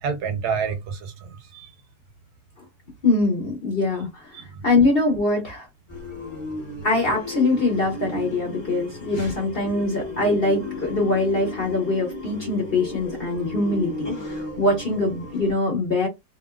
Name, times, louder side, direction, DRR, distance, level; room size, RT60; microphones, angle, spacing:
voice 1, 0.0-1.7 4.3-4.6, right 6 dB, 70° right, 1.2 m, -29 dB
voice 2, 3.0-4.3 4.6-5.7 6.8-16.1, left 2 dB, 40° left, 0.9 m, -23 dB
sound 1, 5.9-15.5, left 2 dB, 20° left, 1.0 m, -34 dB
2.9 x 2.6 x 2.3 m
omnidirectional pair, 1.9 m